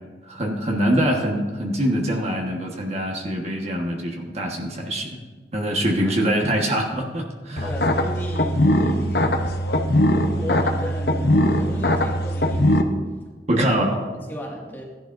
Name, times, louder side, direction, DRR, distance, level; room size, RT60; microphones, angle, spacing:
voice 1, 0.3-5.1 5.5-7.7 13.5-13.9, equal, 35° right, 0 dB, 1.4 m, -24 dB
sound 1, 7.6-12.8, left 1 dB, 60° left, 0.9 m, -20 dB
voice 2, 7.6-9.5 10.2-13.1 13.8-14.8, equal, 10° left, -2 dB, 1.9 m, -34 dB
17.0 x 11.0 x 2.6 m, 1.4 s
head